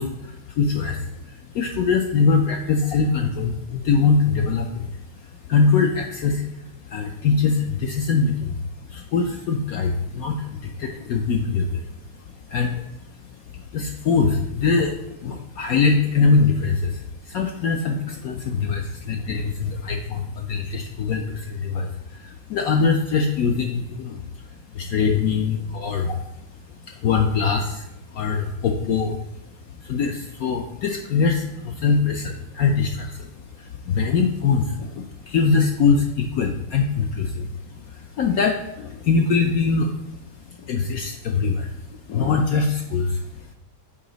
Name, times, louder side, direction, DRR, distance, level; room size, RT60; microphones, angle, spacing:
voice 1, 0.0-43.5, left 5 dB, 80° left, 3 dB, 0.8 m, -23 dB
7.0 x 4.8 x 3.9 m, 0.86 s
omnidirectional pair, 2.1 m